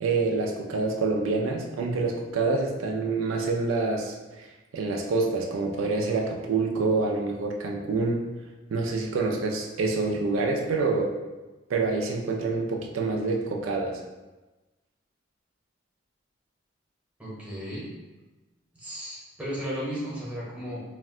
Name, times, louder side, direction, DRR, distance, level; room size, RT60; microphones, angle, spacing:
voice 1, 0.0-4.2 4.7-8.2 8.7-11.1 11.7-14.0, right 3 dB, 85° right, 0 dB, 0.4 m, -26 dB
voice 2, 17.2-17.9 18.7-20.8, equal, 5° right, -7 dB, 0.8 m, -34 dB
2.4 x 2.1 x 3.6 m, 1.2 s
head